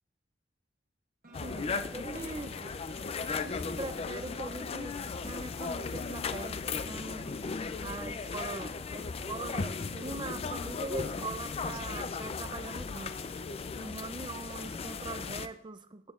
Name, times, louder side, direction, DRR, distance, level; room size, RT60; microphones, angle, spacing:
sound 1, 1.2-5.2, right 3 dB, 50° right, 1.4 m, -56 dB
sound 2, 1.3-15.5, left 4 dB, 35° left, 0.4 m, -36 dB
voice 1, 1.4-2.9 3.4-7.3 7.8-13.1 13.8-16.1, right 3 dB, 25° right, 10 dB, 0.5 m, -42 dB
15.5 x 7.1 x 2.5 m, 0.64 s
head